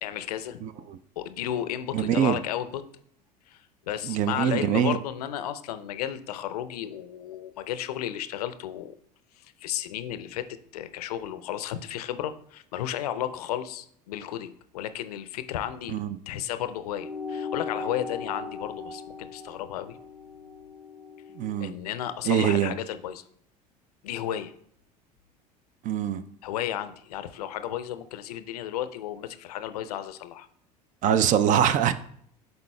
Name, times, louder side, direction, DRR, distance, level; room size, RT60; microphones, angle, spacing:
voice 1, 0.0-0.6 1.2-2.8 3.5-9.0 9.4-16.0 16.3-20.0 21.6-23.2 24.0-24.5 26.4-30.5, left 11 dB, 70° left, 0.5 m, -33 dB
voice 2, 0.6-1.0 1.9-2.4 4.0-5.0 15.9-16.2 21.4-21.7 22.3-22.7 25.8-26.2 31.0-31.9, right 9 dB, 40° right, 0.4 m, -23 dB
sound 1, 16.9-21.7, left 4 dB, 5° right, 1.1 m, -38 dB
11.0 x 4.0 x 2.2 m
figure-of-eight pair, 70°, 20 cm